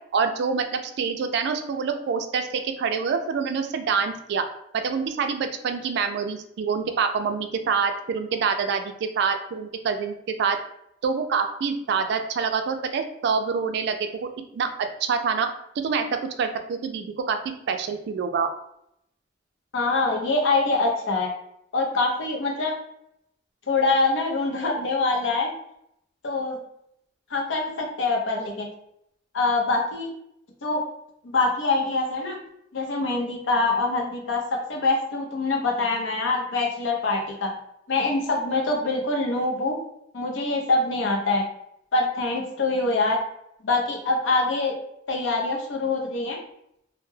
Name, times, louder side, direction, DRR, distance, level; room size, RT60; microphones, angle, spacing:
voice 1, 0.1-4.5 4.7-10.6 11.0-14.0 14.2-14.7 15.0-15.5 15.8-17.4 17.7-18.5, right 5 dB, 65° right, 7 dB, 0.3 m, -26 dB
voice 2, 19.7-21.3 21.7-22.7 23.7-25.5 26.2-26.6 27.3-28.7 29.3-30.1 30.6-30.8 31.2-32.4 32.7-37.5 37.9-39.8 40.1-41.4 41.9-43.2 43.6-44.7 45.1-46.4, left 3 dB, 80° left, 0 dB, 0.6 m, -24 dB
2.1 x 2.0 x 3.1 m, 0.76 s
head